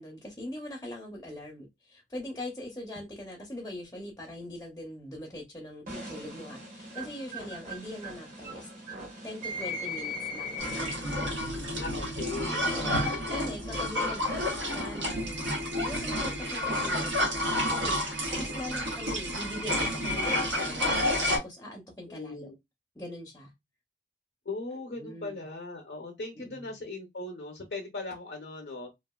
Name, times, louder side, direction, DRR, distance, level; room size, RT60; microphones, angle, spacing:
voice 1, 0.0-8.7 9.2-11.0 12.7-15.4 15.8-22.5 23.0-23.5 24.9-25.4 26.4-26.7, left 1 dB, 15° left, 0.5 m, -42 dB
sound 1, 5.9-11.3, left 1 dB, 45° right, 1.1 m, -39 dB
sound 2, 10.6-21.4, left 1 dB, 85° right, 0.9 m, -30 dB
voice 2, 11.6-13.0 22.1-22.5 24.5-28.9, left 3 dB, 60° left, 0.5 m, -39 dB
sound 3, 15.1-16.9 18.1-20.5, right 5 dB, 65° right, 1.3 m, -44 dB
2.8 x 2.3 x 2.2 m
head